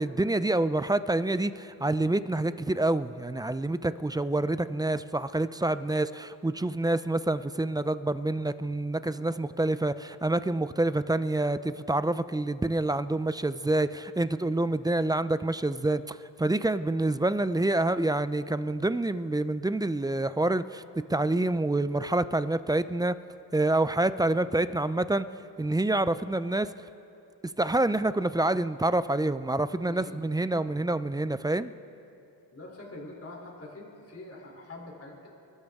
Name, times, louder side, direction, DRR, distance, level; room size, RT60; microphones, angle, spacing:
voice 1, 0.0-20.8 21.1-23.2 23.5-25.3 25.6-26.7 27.6-31.7, right 2 dB, 10° right, 14 dB, 0.3 m, -27 dB
voice 2, 29.8-30.7 32.5-35.3, left 2 dB, 35° left, -2 dB, 3.3 m, -45 dB
29.5 x 12.5 x 3.6 m, 2.8 s
cardioid pair, 90°, 42 cm